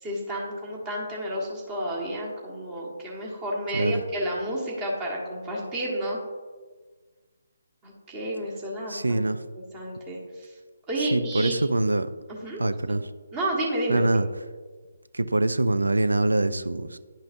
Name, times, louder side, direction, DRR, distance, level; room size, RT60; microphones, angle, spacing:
voice 1, 0.0-6.2 7.8-9.2 9.7-10.5 10.9-11.5 12.4-12.6 12.9-13.0 13.3-14.0, right 1 dB, 20° right, -3 dB, 1.6 m, -31 dB
voice 2, 8.9-9.4 11.0-12.1 12.6-13.1 13.9-14.3 15.1-17.0, right 2 dB, 80° right, 12 dB, 0.5 m, -24 dB
10.5 x 5.6 x 2.6 m, 1.4 s
figure-of-eight pair, 145°, 0 cm